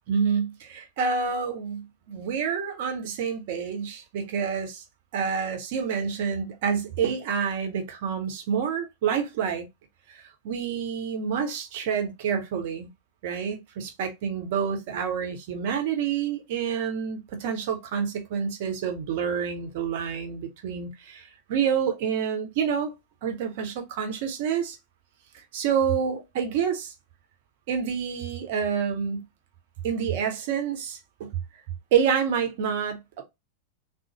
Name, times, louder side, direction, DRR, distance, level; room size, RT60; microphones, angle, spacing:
voice 1, 0.1-4.8 5.1-9.7 10.1-12.9 13.2-22.9 23.2-24.8 25.3-26.9 27.7-29.3 29.8-31.3 31.9-33.2, right 7 dB, 50° right, 0.7 m, -28 dB
3.8 x 2.1 x 2.9 m
figure-of-eight pair, 90°, 0 cm